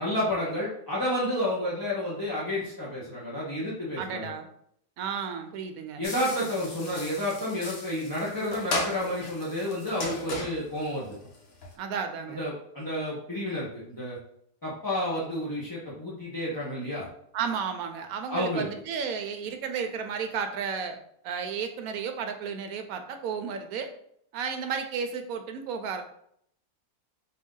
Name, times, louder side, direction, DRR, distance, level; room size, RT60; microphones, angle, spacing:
voice 1, 0.0-4.3 6.0-11.2 12.3-14.2 14.6-17.1 18.3-18.6, left 1 dB, 20° left, -8 dB, 0.6 m, -30 dB
voice 2, 4.0-4.5 5.0-6.0 11.8-12.4 17.3-23.9 24.3-26.0, right 6 dB, 70° right, 7 dB, 1.0 m, -33 dB
sound 1, 6.0-11.8, left 2 dB, 50° left, 0.9 m, -37 dB
4.1 x 2.6 x 3.7 m, 0.69 s
omnidirectional pair, 1.7 m